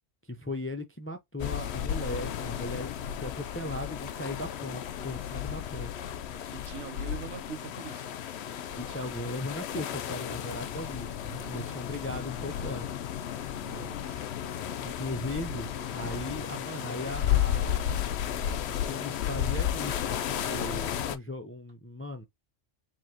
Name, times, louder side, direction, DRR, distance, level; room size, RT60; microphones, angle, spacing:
voice 1, 0.3-2.9 3.2-6.0 8.8-12.9 14.8-17.9 18.7-22.2, left 1 dB, 15° left, 0.5 m, -38 dB
sound 1, 1.4-21.2, left 10 dB, 65° left, 0.9 m, -33 dB
voice 2, 6.5-8.1 13.6-14.4, right 7 dB, 70° right, 1.1 m, -43 dB
sound 2, 11.2-12.5 12.8-12.9 13.1-13.2 14.2-14.3 15.2-17.5 18.1-18.2 18.5-18.6 19.0-20.0 20.3-20.4 20.8-20.9 21.7-21.8, right 5 dB, 40° right, 1.7 m, -50 dB
4.8 x 3.3 x 2.8 m
omnidirectional pair, 1.3 m